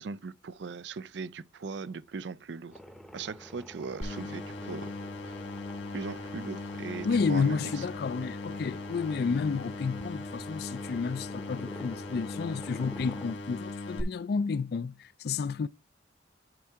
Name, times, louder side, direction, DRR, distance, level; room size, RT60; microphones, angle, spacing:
voice 1, 0.0-2.8 3.1-4.9 5.3-5.4 5.9-7.9, right 4 dB, 70° right, 0.5 m, -39 dB
sound 1, 2.7-13.3, equal, ahead, 0.7 m, -49 dB
sound 2, 4.0-14.0, left 2 dB, 85° left, 2.2 m, -39 dB
voice 2, 7.0-15.7, left 5 dB, 55° left, 0.3 m, -31 dB
11.0 x 4.5 x 3.5 m
head